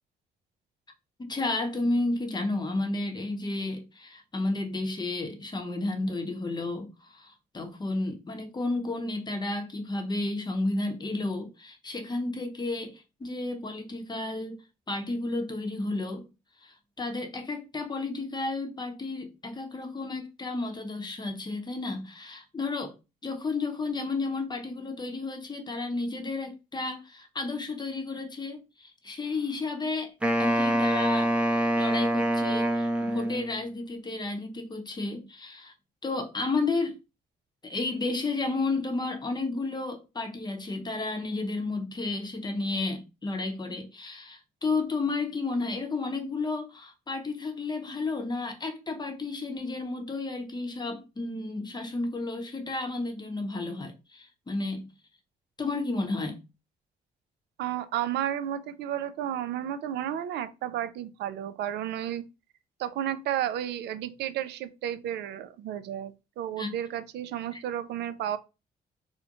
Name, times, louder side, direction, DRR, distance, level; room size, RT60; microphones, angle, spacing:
voice 1, 1.2-14.6 14.9-16.2 16.6-22.9 23.2-30.1 30.4-35.7 36.0-37.0 37.6-54.9 55.6-56.4 66.6-66.7 67.5-67.6, left 3 dB, 25° left, 0.8 m, -32 dB
Wind instrument woodwind instrument, 30.2-33.7, right 1 dB, 5° right, 0.6 m, -25 dB
voice 2, 57.6-62.2 62.8-68.4, right 11 dB, 70° right, 0.4 m, -32 dB
2.3 x 2.1 x 2.9 m
supercardioid pair, 60°, 18 cm